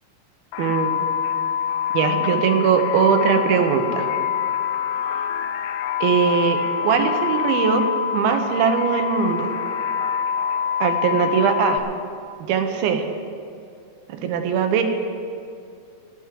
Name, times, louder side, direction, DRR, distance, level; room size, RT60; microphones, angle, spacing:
sound 1, 0.5-11.8, left 8 dB, 80° left, 2.5 m, -25 dB
voice 1, 0.6-1.0 1.9-4.1 6.0-7.8 8.1-9.5 10.8-11.8 12.5-13.0 14.1-14.8, right 7 dB, 75° right, 6 dB, 2.8 m, -20 dB
17.5 x 6.2 x 9.4 m, 2.5 s
omnidirectional pair, 4.6 m